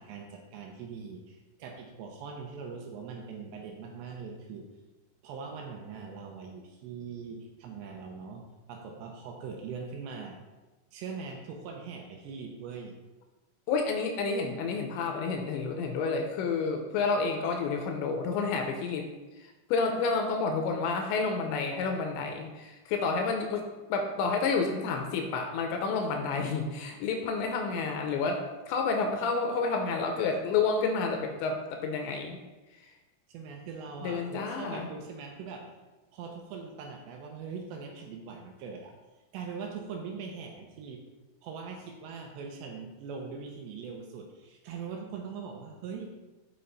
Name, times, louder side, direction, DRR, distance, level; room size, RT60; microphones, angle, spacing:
voice 1, 0.0-4.7 5.2-8.4 8.7-10.4 10.9-13.0 33.3-35.7 36.1-38.9 39.3-41.0 41.4-46.1, right 5 dB, 80° right, 2 dB, 2.7 m, -41 dB
voice 2, 13.7-19.1 19.4-23.6 23.9-32.4 34.0-34.9, left 4 dB, 80° left, 3 dB, 2.8 m, -30 dB
7.8 x 5.4 x 4.1 m, 1.1 s
omnidirectional pair, 5.5 m